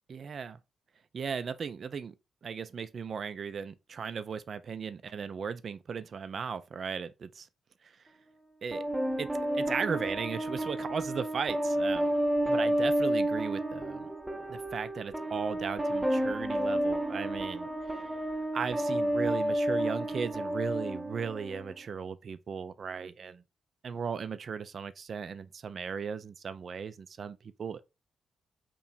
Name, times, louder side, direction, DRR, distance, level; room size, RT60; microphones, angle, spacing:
voice 1, 0.1-0.6 1.1-2.1 2.4-7.5 7.8-8.0 8.6-8.8 9.2-9.3 9.5-12.1 12.5-14.1 14.5-18.0 18.5-23.4 23.8-27.8, right 6 dB, 55° right, 0.3 m, -37 dB
sound 1, 8.7-21.7, right 1 dB, 15° right, 0.6 m, -31 dB
2.8 x 2.6 x 4.2 m
hypercardioid pair, 40°, 0 cm